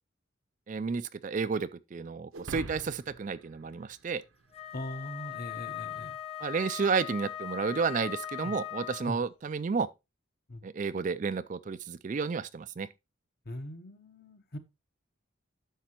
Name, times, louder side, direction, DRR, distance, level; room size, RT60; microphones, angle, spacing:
voice 1, 0.7-4.2 6.4-9.9 10.6-12.9, right 5 dB, 40° right, 0.3 m, -31 dB
sound 1, 2.3-4.8, right 2 dB, 80° right, 0.9 m, -45 dB
Wind instrument woodwind instrument, 4.5-9.2, left 12 dB, 30° left, 0.7 m, -40 dB
voice 2, 4.7-6.2 8.4-8.5 9.1-9.2 10.5-10.6 13.5-14.6, left 1 dB, 50° left, 1.0 m, -40 dB
10.0 x 6.7 x 3.0 m
head